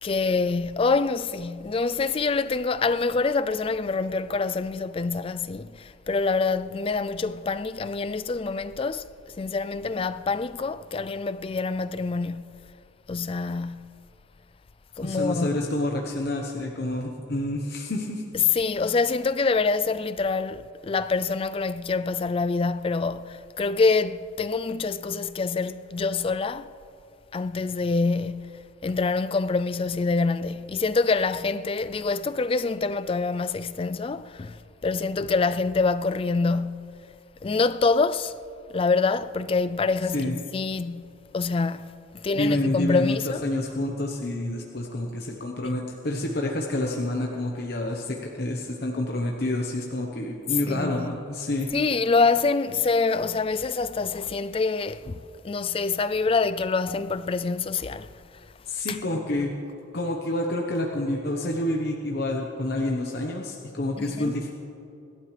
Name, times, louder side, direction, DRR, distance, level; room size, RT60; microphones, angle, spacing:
voice 1, 0.0-9.1 9.4-12.6 13.1-14.0 15.0-15.6 18.4-26.7 27.3-34.6 34.8-37.0 37.4-38.3 38.7-43.4 50.7-51.2 51.7-55.2 55.4-58.1 58.9-59.0 59.4-59.5 64.0-64.4, left 4 dB, 25° left, 0.3 m, -26 dB
voice 2, 15.0-18.2 40.1-40.3 42.3-51.7 58.7-59.5 59.9-64.5, left 1 dB, 50° left, 1.1 m, -28 dB
26.0 x 12.5 x 3.3 m
head